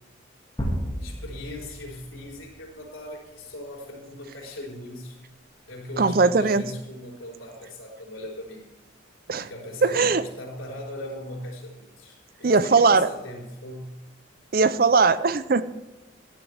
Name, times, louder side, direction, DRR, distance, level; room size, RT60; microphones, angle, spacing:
sound 1, 0.6-2.5, equal, 20° left, 2.0 m, -32 dB
voice 1, 1.0-5.2 5.7-8.7 9.4-14.0, left 1 dB, 90° left, -1 dB, 4.3 m, -39 dB
voice 2, 6.0-6.6 9.3-9.5 9.8-10.2 12.4-13.1 14.5-15.6, right 4 dB, 45° right, 14 dB, 0.5 m, -19 dB
16.0 x 11.0 x 3.5 m, 1.0 s
head